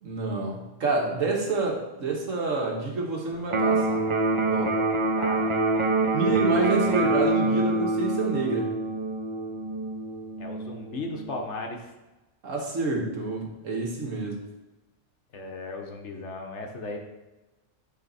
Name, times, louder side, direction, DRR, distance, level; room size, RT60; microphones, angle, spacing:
voice 1, 0.0-4.1 4.4-4.8 6.1-8.7 12.4-14.5, right 3 dB, 85° right, 0 dB, 1.8 m, -28 dB
Electric guitar, 3.5-11.5, right 2 dB, 45° right, 0.4 m, -26 dB
voice 2, 5.2-5.6 10.4-11.9 15.3-17.0, left 2 dB, 65° left, 2 dB, 1.4 m, -36 dB
11.0 x 3.8 x 4.2 m, 1.1 s
omnidirectional pair, 1.3 m